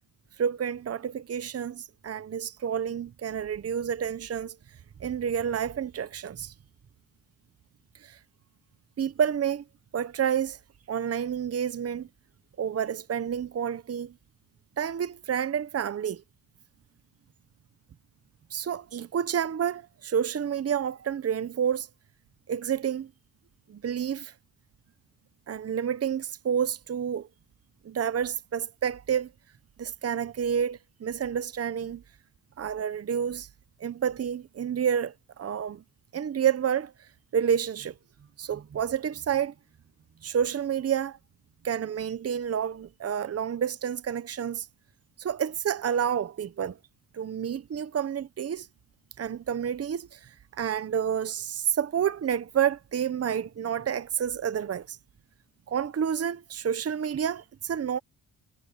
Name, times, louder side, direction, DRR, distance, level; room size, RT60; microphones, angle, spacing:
voice 1, 0.4-4.5 5.0-6.5 8.0-8.2 9.0-9.6 9.9-10.6 10.9-12.1 12.6-14.1 14.8-16.2 18.5-21.9 22.5-23.1 23.7-24.3 25.5-27.3 27.8-29.3 29.8-32.0 32.6-33.5 33.8-35.8 36.1-36.9 37.3-37.9 38.4-39.5 40.2-41.2 41.6-44.7 45.2-46.8 47.1-48.7 49.2-55.0 55.7-58.0, right 8 dB, 35° right, 0.9 m, -29 dB
cardioid pair, 105°, 45 cm